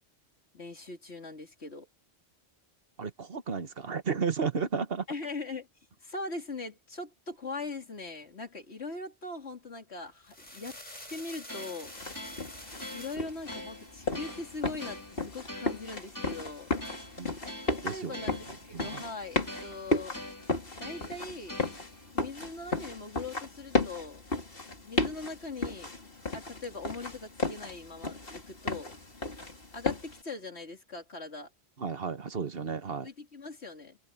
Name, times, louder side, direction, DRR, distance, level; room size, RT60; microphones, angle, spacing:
voice 1, 0.5-1.9 5.1-5.7 6.0-10.8 11.1-11.9 12.9-16.7 17.9-20.2 20.8-21.6 22.1-24.2 24.8-28.9 29.7-31.5 33.0-34.0, left 3 dB, 80° left, 3.3 m, -41 dB
voice 2, 3.0-5.0 17.2-17.3 17.8-18.2 18.7-19.0 31.8-33.1, right 5 dB, 60° right, 1.4 m, -33 dB
Cigarette Lighter + Sparkler, 10.1-13.2, left 1 dB, 40° left, 6.9 m, -47 dB
sound 1, 11.5-22.1, left 1 dB, 15° left, 3.5 m, -45 dB
sound 2, 11.8-30.2, left 2 dB, 60° left, 3.2 m, -35 dB
omnidirectional pair, 1.1 m